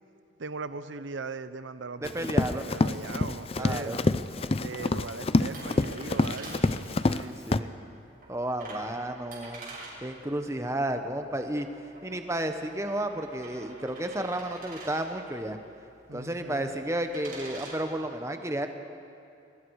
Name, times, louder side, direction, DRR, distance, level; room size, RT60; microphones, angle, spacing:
voice 1, 0.4-4.0 4.6-7.4 16.1-16.7, right 4 dB, 85° right, 12 dB, 0.8 m, -39 dB
Run, 2.0-7.2 7.5-7.6, left 2 dB, 30° left, 0.5 m, -27 dB
voice 2, 2.0-2.7 3.6-4.0 7.1-7.7 8.3-9.6 10.0-11.7 12.0-15.6 16.1-18.7, right 1 dB, 15° right, 6 dB, 1.1 m, -32 dB
sound 1, 4.3-17.8, right 2 dB, 45° right, 5.9 m, -48 dB
26.5 x 22.5 x 4.8 m, 2.6 s
head